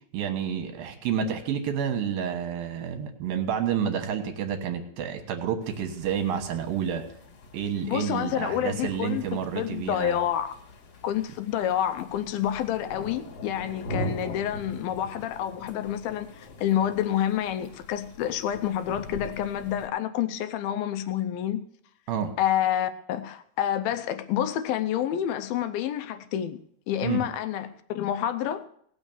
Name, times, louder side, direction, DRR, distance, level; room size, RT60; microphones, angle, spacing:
voice 1, 0.1-7.0 7.5-10.2 22.1-22.3 27.0-27.2, right 8 dB, 65° right, 2.9 m, -29 dB
sound 1, 5.6-19.9, left 1 dB, 50° left, 2.2 m, -42 dB
voice 2, 7.8-10.6 11.0-21.6 22.4-26.6 26.9-28.7, left 11 dB, 75° left, 2.3 m, -28 dB
18.0 x 6.2 x 7.1 m
omnidirectional pair, 4.7 m